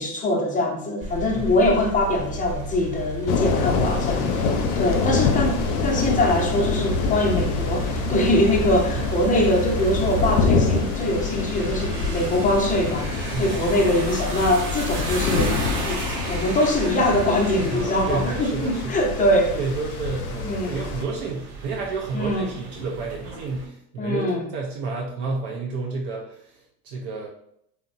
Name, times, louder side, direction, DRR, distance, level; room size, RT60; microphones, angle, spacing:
voice 1, 0.0-4.4 4.8-15.5 15.8-19.6 20.4-20.8 22.1-22.5 24.0-24.5, left 1 dB, 20° left, 1 dB, 0.5 m, -23 dB
sound 1, 1.0-16.0 16.6-17.8, right 3 dB, 25° right, 1.1 m, -33 dB
sound 2, 3.3-21.0, left 5 dB, 75° left, 0.5 m, -26 dB
voice 2, 3.7-4.5 9.0-9.2 13.3-13.7 17.7-19.0 19.5-27.3, right 4 dB, 60° right, -1 dB, 0.6 m, -31 dB
sound 3, 4.0-23.7, right 2 dB, 90° right, 0.8 m, -36 dB
2.8 x 2.1 x 2.5 m, 0.73 s
hypercardioid pair, 90°, 45 cm